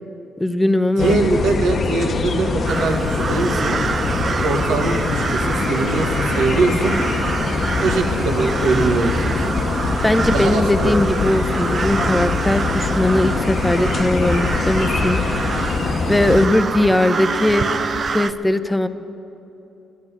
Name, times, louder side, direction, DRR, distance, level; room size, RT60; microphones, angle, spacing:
voice 1, 0.4-1.2 10.0-15.2 16.1-17.7 18.1-18.9, left 1 dB, 10° left, 12 dB, 0.7 m, -19 dB
sound 1, 1.0-16.5, left 4 dB, 45° left, 0.9 m, -23 dB
voice 2, 1.0-3.8 4.4-7.0 7.7-9.6 10.3-10.9 16.5-16.6, right 3 dB, 85° right, 3 dB, 1.7 m, -22 dB
sound 2, 2.0-18.0, right 4 dB, 65° right, 1.4 m, -36 dB
sound 3, 2.7-18.3, right 5 dB, 45° right, 0.5 m, -27 dB
12.0 x 10.0 x 9.7 m, 2.9 s
cardioid pair, 90°, 0 cm